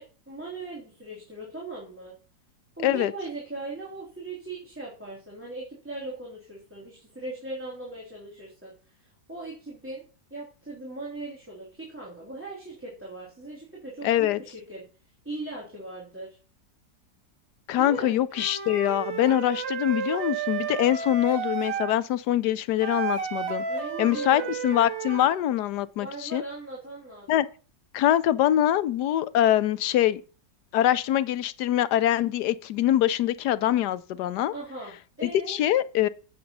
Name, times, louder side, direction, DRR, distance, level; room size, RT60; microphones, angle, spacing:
voice 1, 0.0-2.1 2.8-10.0 10.3-14.8 15.2-16.4 17.8-18.1 23.7-24.6 26.0-27.3 34.5-35.6, right 2 dB, 5° right, 3.0 m, -39 dB
voice 2, 2.8-3.1 14.0-14.4 17.7-23.6 24.0-26.4 27.3-27.5 27.9-30.2 30.7-34.5 35.2-36.1, left 12 dB, 70° left, 1.1 m, -24 dB
Wind instrument woodwind instrument, 18.3-22.0 22.8-25.4, right 6 dB, 85° right, 1.9 m, -32 dB
8.6 x 7.7 x 5.4 m
omnidirectional pair, 2.0 m